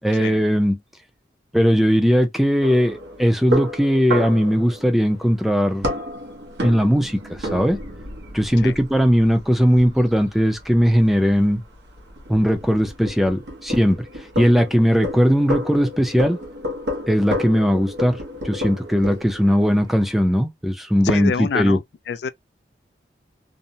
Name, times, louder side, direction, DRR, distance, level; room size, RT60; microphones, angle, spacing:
voice 1, 0.0-0.8 1.5-5.9 6.6-7.8 8.3-11.6 12.3-16.4 17.1-18.2 18.4-21.8, equal, ahead, 0.4 m, -19 dB
sound 1, 2.6-20.2, left 1 dB, 80° right, 0.9 m, -31 dB
voice 2, 21.0-22.3, left 6 dB, 75° left, 0.3 m, -26 dB
2.7 x 2.0 x 2.6 m
head